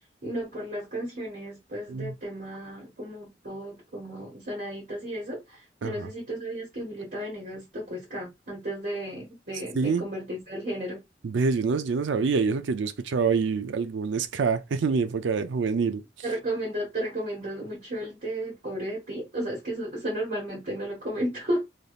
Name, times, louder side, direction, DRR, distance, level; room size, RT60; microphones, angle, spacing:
voice 1, 0.2-11.0 16.2-21.6, right 1 dB, 50° right, 1.3 m, -33 dB
voice 2, 11.2-16.0, right 5 dB, 70° right, 0.4 m, -26 dB
3.3 x 2.6 x 2.4 m
head